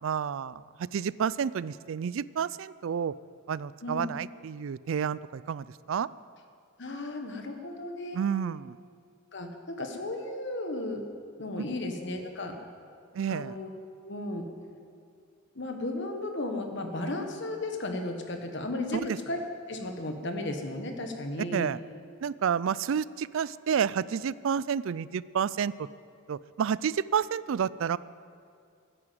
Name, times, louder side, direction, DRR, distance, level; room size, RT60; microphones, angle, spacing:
voice 1, 0.0-3.1 3.5-6.1 8.1-8.8 13.1-13.6 18.9-19.2 21.5-21.8 22.2-25.9 26.3-28.0, right 7 dB, 65° right, 19 dB, 0.3 m, -30 dB
voice 2, 6.8-8.2 9.3-11.0 11.4-12.6 13.3-13.7 14.1-14.5 15.5-19.4 19.7-21.7, left 2 dB, 55° left, 4 dB, 1.5 m, -34 dB
14.5 x 9.8 x 7.6 m, 2.3 s
head